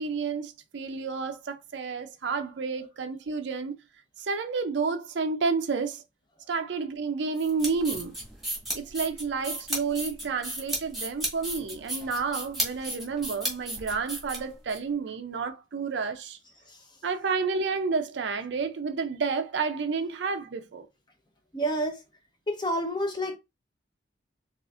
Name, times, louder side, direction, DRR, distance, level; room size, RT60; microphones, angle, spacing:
voice 1, 0.0-3.8 4.2-6.0 6.5-8.1 8.7-16.4 17.0-20.9, right 4 dB, 70° right, 0.5 m, -30 dB
sound 1, 7.4-14.8, right 1 dB, ahead, 1.4 m, -34 dB
voice 2, 21.5-22.0 22.5-23.4, equal, 25° left, 0.7 m, -29 dB
4.9 x 2.4 x 2.4 m
head